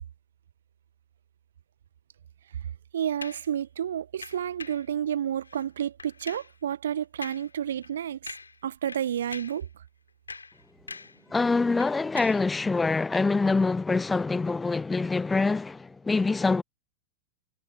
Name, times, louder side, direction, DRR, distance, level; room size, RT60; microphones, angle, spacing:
voice 1, 2.9-8.3 8.6-9.7, right 9 dB, 65° right, 1.5 m, -30 dB
sound 1, 3.2-3.5 4.2-4.9 5.4-5.7 6.0-6.5 7.2-7.5 7.8-8.0 8.3-8.6 8.9-9.6 10.1-11.2 11.5-12.5 13.1-13.3, left 4 dB, 80° left, 3.9 m, -43 dB
voice 2, 11.3-16.6, left 3 dB, 10° left, 0.6 m, -25 dB
figure-of-eight pair, 90°, 0 cm